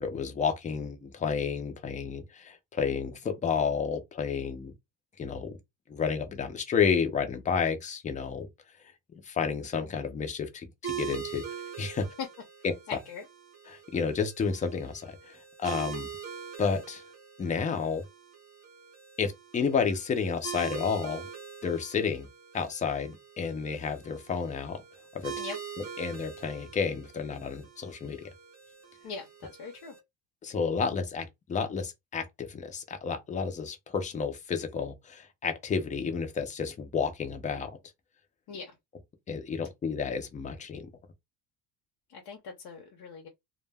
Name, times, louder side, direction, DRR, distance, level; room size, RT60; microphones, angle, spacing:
voice 1, 0.0-4.7 5.2-5.6 5.9-8.5 9.2-11.4 11.8-12.1 13.7-16.1 16.6-17.0 17.4-18.0 19.2-21.3 21.6-22.3 22.5-24.8 25.1-25.3 26.0-28.2 30.4-37.7 39.3-40.9, left 6 dB, 20° left, 0.3 m, -31 dB
sound 1, 10.8-30.0, right 8 dB, 30° right, 0.9 m, -43 dB
voice 2, 12.9-13.2 25.4-25.6 29.0-29.3 29.6-29.9 38.5-38.7 42.1-43.3, left 5 dB, 55° left, 0.7 m, -41 dB
2.1 x 2.1 x 3.2 m
cardioid pair, 140°, 47 cm